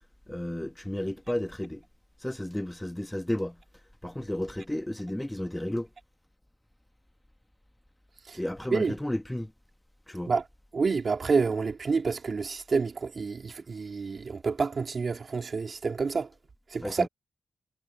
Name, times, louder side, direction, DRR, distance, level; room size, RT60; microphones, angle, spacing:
voice 1, 0.3-1.8 2.2-3.6 4.0-5.9 8.3-9.5 10.1-10.3 16.8-17.1, left 1 dB, 10° left, 1.5 m, -33 dB
voice 2, 10.7-16.3 16.7-17.1, right 4 dB, 60° right, 2.4 m, -28 dB
cardioid pair, 50°, 0 cm